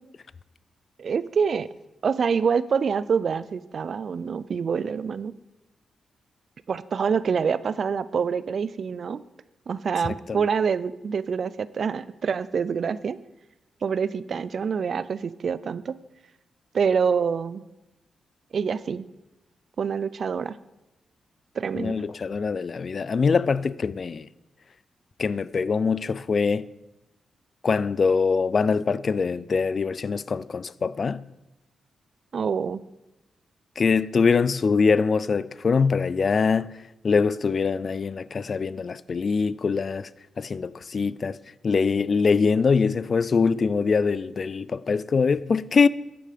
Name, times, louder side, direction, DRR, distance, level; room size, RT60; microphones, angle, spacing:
voice 1, 1.0-1.7 2.0-5.3 6.7-9.2 9.7-13.2 13.8-16.0 16.7-17.6 18.5-19.1 19.8-20.6 21.6-22.0 32.3-32.8, right 6 dB, 55° right, 0.4 m, -26 dB
voice 2, 10.0-10.4 21.8-24.3 25.2-26.7 27.6-31.2 33.8-36.8 37.0-40.1 40.4-41.4 41.6-45.9, left 5 dB, 45° left, 0.3 m, -23 dB
9.9 x 9.2 x 5.1 m
cardioid pair, 115°, 0 cm